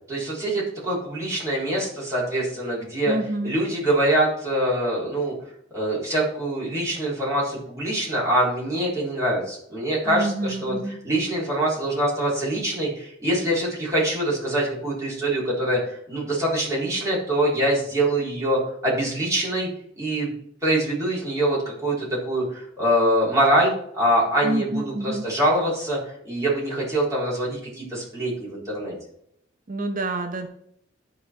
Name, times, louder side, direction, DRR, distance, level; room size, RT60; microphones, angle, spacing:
voice 1, 0.1-3.1 3.4-5.3 5.7-19.7 20.0-20.3 20.6-26.0 26.2-28.9, right 1 dB, 15° right, -6 dB, 3.8 m, -24 dB
voice 2, 3.1-3.5 10.0-11.0 24.4-25.3 29.7-30.5, right 2 dB, 45° right, 6 dB, 0.8 m, -28 dB
11.5 x 4.3 x 4.5 m, 0.71 s
head